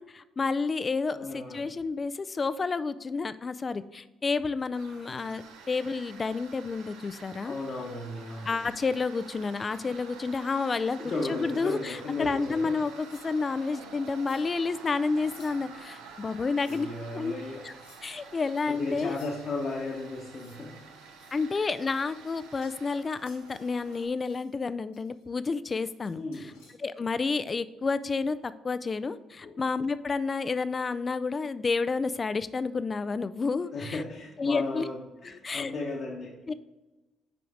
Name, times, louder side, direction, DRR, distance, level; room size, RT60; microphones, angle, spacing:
voice 1, 0.0-7.6 8.5-11.0 11.3-16.9 17.1-17.3 17.6-17.7 18.0-19.1 21.3-26.2 26.8-28.4 28.6-34.0 34.4-34.8 35.3-35.7 36.5-36.6, left 4 dB, 35° left, 14 dB, 0.4 m, -30 dB
voice 2, 1.1-1.7 7.4-8.7 11.0-12.8 16.0-16.2 16.6-17.6 18.7-20.8 26.1-26.5 29.4-29.5 33.7-36.4, left 3 dB, 55° left, -4 dB, 1.1 m, -35 dB
Tools, 4.7-24.0, right 5 dB, 75° right, 0.7 m, -49 dB
sound 1, 12.9-13.6 14.1-14.6 15.1-15.8 16.4-17.0 17.7-18.1 19.0-19.8 20.1-20.7 21.0-23.0 23.3-24.5 24.9-26.7, left 4 dB, 85° left, 1.7 m, -60 dB
5.8 x 5.1 x 4.9 m, 1.1 s
hypercardioid pair, 50°, 0 cm